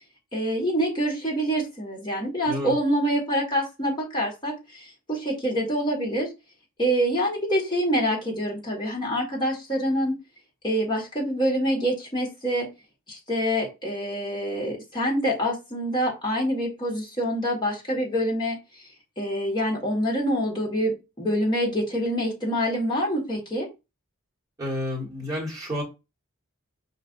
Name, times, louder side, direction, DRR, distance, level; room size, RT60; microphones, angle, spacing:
voice 1, 0.3-6.3 6.8-10.2 10.6-12.7 13.1-18.6 19.2-23.7, equal, 20° left, -3 dB, 1.6 m, -26 dB
voice 2, 24.6-25.8, left 1 dB, 15° right, -4 dB, 1.4 m, -30 dB
5.3 x 2.6 x 2.5 m, 0.26 s
head